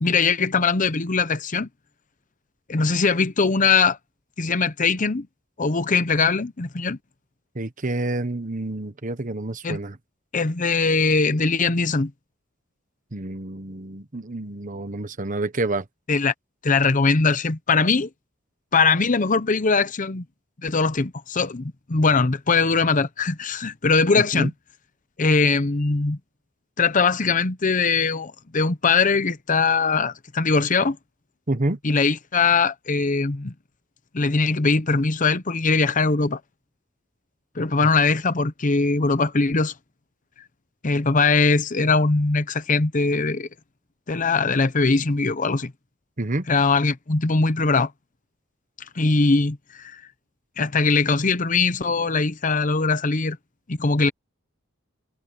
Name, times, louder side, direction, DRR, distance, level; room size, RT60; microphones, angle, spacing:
voice 1, 0.0-1.7 2.7-4.0 4.4-5.3 5.6-7.0 9.6-9.8 10.3-12.1 16.1-16.3 16.6-18.1 18.7-20.2 20.6-24.5 25.2-26.2 26.8-31.0 31.8-33.5 34.1-36.4 37.6-39.7 40.8-43.5 44.1-45.7 46.5-47.9 49.0-50.0 50.6-53.4 53.7-54.1, left 4 dB, 40° left, 0.9 m, -21 dB
voice 2, 7.5-10.0 13.1-15.8 24.1-24.5 31.5-31.8 46.2-46.5, right 2 dB, 40° right, 1.3 m, -28 dB
head